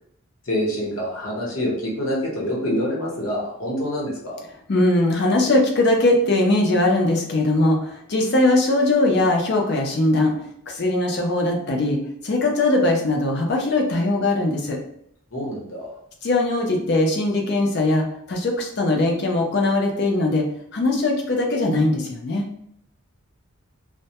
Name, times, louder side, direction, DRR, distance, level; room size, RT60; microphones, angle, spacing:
voice 1, 0.5-4.4 15.3-15.9, equal, 75° left, -3 dB, 0.9 m, -26 dB
voice 2, 4.7-10.3 10.7-12.0 12.2-14.8 16.2-20.5 20.7-22.4, left 2 dB, 50° left, 1 dB, 0.5 m, -20 dB
2.1 x 2.1 x 2.8 m, 0.70 s
head